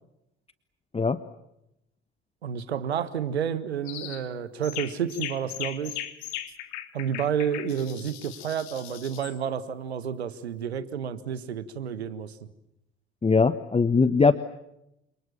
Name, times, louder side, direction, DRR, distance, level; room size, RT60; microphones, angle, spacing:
voice 1, 2.4-6.0 6.9-12.3, right 8 dB, 80° right, 15 dB, 1.6 m, -30 dB
sound 1, 3.9-4.2 4.6-9.4, left 13 dB, 60° left, 3.0 m, -38 dB
voice 2, 13.2-14.3, left 4 dB, 20° left, 14 dB, 1.2 m, -20 dB
28.5 x 27.0 x 7.3 m, 0.85 s
figure-of-eight pair, 55°, 32 cm